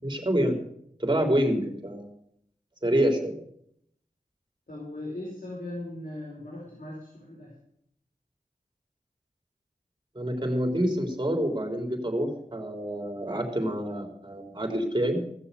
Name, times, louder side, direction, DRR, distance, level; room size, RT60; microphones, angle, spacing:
voice 1, 0.0-0.6 1.0-2.1 2.8-3.4 10.2-15.2, equal, 30° right, 3 dB, 3.6 m, -27 dB
voice 2, 4.7-7.5, left 1 dB, 75° left, -3 dB, 5.3 m, -38 dB
16.5 x 6.9 x 8.3 m, 0.71 s
wide cardioid pair, 45°, 14 cm